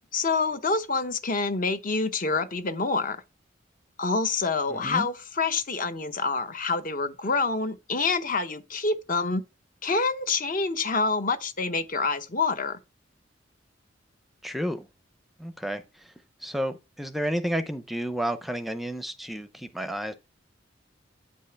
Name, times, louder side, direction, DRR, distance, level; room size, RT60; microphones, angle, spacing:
voice 1, 0.1-3.2 4.0-9.4 9.8-12.8, left 4 dB, 45° left, 0.8 m, -27 dB
voice 2, 4.7-5.1 14.4-14.9 15.4-15.8 16.4-20.1, equal, ahead, 0.6 m, -31 dB
8.6 x 5.4 x 5.7 m
head